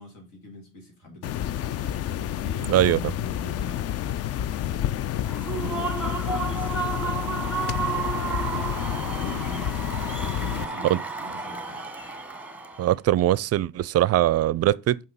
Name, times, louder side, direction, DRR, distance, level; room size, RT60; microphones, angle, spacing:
voice 1, 0.0-2.0 2.4-3.9 5.5-7.4 7.6-9.8 10.4-11.9, left 2 dB, 75° left, 2.4 m, -43 dB
sound 1, 1.2-10.6, left 11 dB, 40° left, 0.4 m, -29 dB
voice 2, 2.7-3.0 10.9-11.0 12.8-15.1, right 13 dB, 40° right, 0.5 m, -21 dB
Human voice / Cheering / Applause, 5.2-12.9, right 5 dB, 5° right, 1.0 m, -32 dB
5.7 x 5.0 x 5.5 m
hypercardioid pair, 50°, 39 cm